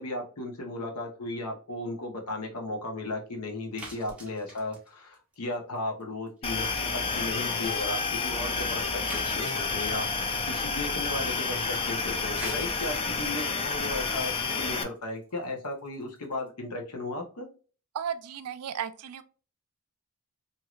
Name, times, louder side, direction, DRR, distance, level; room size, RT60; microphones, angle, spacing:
voice 1, 0.0-6.9 7.1-17.5, left 2 dB, 90° left, 1.0 m, -35 dB
sound 1, 3.8-6.0 6.3-6.6 6.9-7.0 7.2-7.3 7.6-7.7 8.1-8.2 9.1-10.3 12.1-16.5, right 1 dB, 5° right, 0.9 m, -46 dB
sound 2, 6.4-14.8, left 4 dB, 25° left, 0.4 m, -30 dB
voice 2, 17.9-19.2, right 8 dB, 80° right, 0.4 m, -34 dB
3.0 x 2.7 x 2.4 m
head